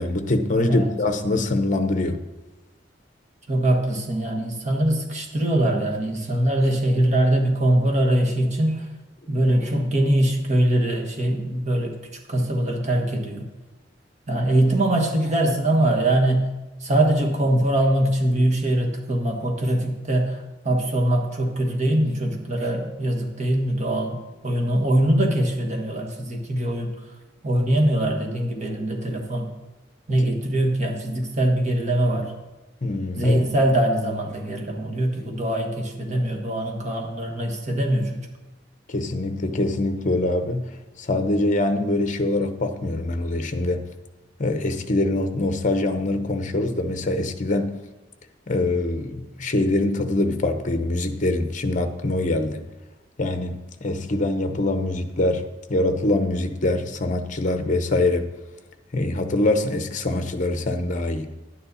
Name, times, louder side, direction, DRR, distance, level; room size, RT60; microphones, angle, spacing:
voice 1, 0.0-2.2 30.2-30.3 32.8-33.4 38.9-43.9 44.4-47.8 48.5-52.6 53.2-58.3 58.9-61.3, left 2 dB, 45° left, 8 dB, 0.8 m, -24 dB
voice 2, 3.5-8.9 9.3-12.0 12.3-13.5 14.3-16.5 16.8-26.9 27.4-29.5 30.1-32.3 33.1-38.2, right 1 dB, 40° right, 1 dB, 1.5 m, -22 dB
11.0 x 9.7 x 4.1 m, 1.1 s
head